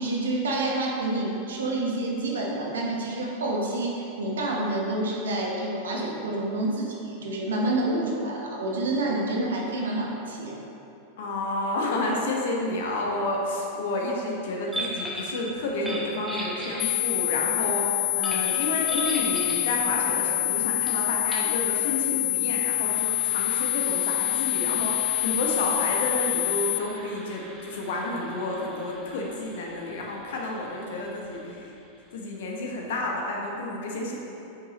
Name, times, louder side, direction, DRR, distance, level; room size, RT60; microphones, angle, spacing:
voice 1, 0.0-10.6, right 2 dB, 65° right, -2 dB, 1.0 m, -28 dB
voice 2, 11.2-31.7 32.1-34.2, left 2 dB, 55° left, -1 dB, 1.1 m, -30 dB
sound 1, 14.7-15.4 15.7-17.3 18.2-19.7 20.9-21.0 21.3-21.5 22.6-31.9, equal, 5° right, 1.2 m, -39 dB
sound 2, 16.8-26.8, left 21 dB, 40° left, 0.4 m, -26 dB
7.9 x 5.6 x 2.9 m, 2.9 s
figure-of-eight pair, 90°, 0 cm